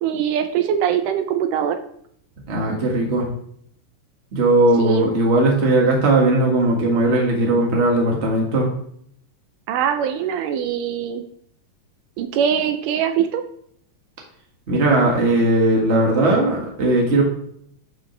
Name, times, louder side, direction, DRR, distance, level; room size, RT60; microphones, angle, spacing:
voice 1, 0.0-1.8 4.8-5.1 9.7-11.2 12.2-13.4, right 8 dB, 80° right, 7 dB, 2.1 m, -22 dB
voice 2, 2.4-3.3 4.3-8.7 14.7-17.2, right 2 dB, 30° right, -1 dB, 1.4 m, -18 dB
11.0 x 5.2 x 3.3 m, 0.67 s
omnidirectional pair, 3.8 m